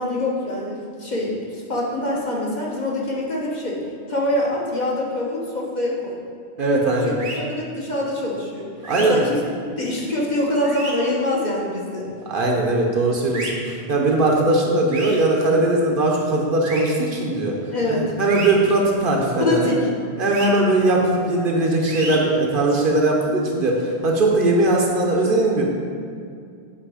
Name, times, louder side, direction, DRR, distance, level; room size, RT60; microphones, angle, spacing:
voice 1, 0.0-3.8 4.1-6.2 7.0-7.1 7.5-8.7 9.1-9.4 9.8-12.1 17.7-18.1 19.4-19.9, left 1 dB, 45° left, -3 dB, 1.0 m, -24 dB
voice 2, 6.6-7.2 8.9-9.2 12.3-17.6 17.9-19.7 20.2-25.6, right 2 dB, 55° right, -1 dB, 0.9 m, -20 dB
sound 1, 7.2-7.4 8.8-9.1 10.6-10.9 13.3-13.5 14.9-15.2 16.6-16.8 18.3-18.5 20.3-20.5 21.9-22.2, right 2 dB, 80° right, 1.3 m, -31 dB
8.5 x 2.9 x 4.8 m, 2.3 s
omnidirectional pair, 1.1 m